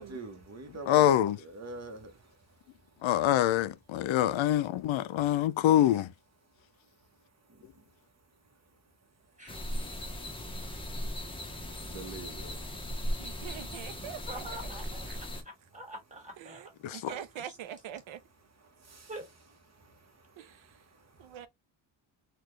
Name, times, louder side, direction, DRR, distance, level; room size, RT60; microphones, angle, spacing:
voice 1, 0.0-2.5 7.5-7.8 11.8-12.6 18.6-19.3 19.7-21.4, right 2 dB, 35° right, 1.0 m, -46 dB
voice 2, 0.9-1.4 3.0-6.1 16.8-17.0, left 12 dB, 80° left, 0.5 m, -25 dB
sound 1, 9.5-15.4, equal, 10° left, 0.8 m, -38 dB
voice 3, 13.2-14.7 15.1-15.4 16.4-18.2 20.4-20.8 21.2-21.5, right 10 dB, 85° right, 0.7 m, -44 dB
voice 4, 14.3-16.6 17.1-17.2 19.1-19.3, right 1 dB, 15° right, 2.0 m, -44 dB
4.0 x 2.4 x 3.1 m
wide cardioid pair, 130°, 46 cm